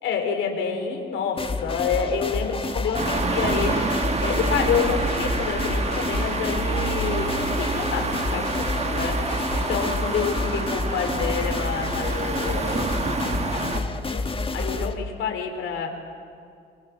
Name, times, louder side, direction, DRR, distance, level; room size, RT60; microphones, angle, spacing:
voice 1, 0.0-8.5 8.7-15.9, left 6 dB, 85° left, 4 dB, 3.8 m, -28 dB
sound 1, 1.4-14.9, left 3 dB, 25° left, 1.7 m, -29 dB
sound 2, 2.9-13.8, right 3 dB, 35° right, 1.9 m, -27 dB
28.0 x 21.5 x 7.3 m, 2.4 s
cardioid pair, 90°, 20 cm